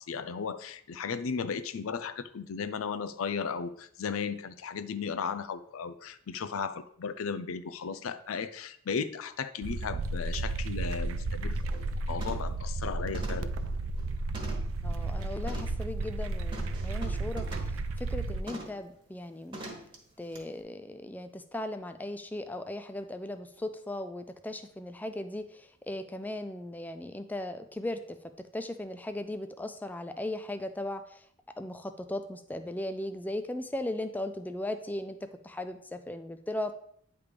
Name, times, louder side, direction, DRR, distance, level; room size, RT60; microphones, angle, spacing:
voice 1, 0.0-13.5, left 6 dB, 90° left, 12 dB, 0.5 m, -35 dB
sound 1, 9.6-18.4, right 2 dB, 80° right, 0.5 m, -33 dB
sound 2, 10.4-10.5 10.9-11.2 11.6-11.9 12.2-12.6 13.1-14.8 15.5-15.8 16.5-17.8 18.5-18.8 19.5-20.0 20.3-20.4, right 1 dB, 25° right, 1.3 m, -43 dB
voice 2, 14.8-17.5 18.0-19.6 20.2-31.2 31.6-36.7, left 1 dB, 10° left, 8 dB, 0.3 m, -37 dB
9.5 x 3.4 x 5.0 m, 0.65 s
head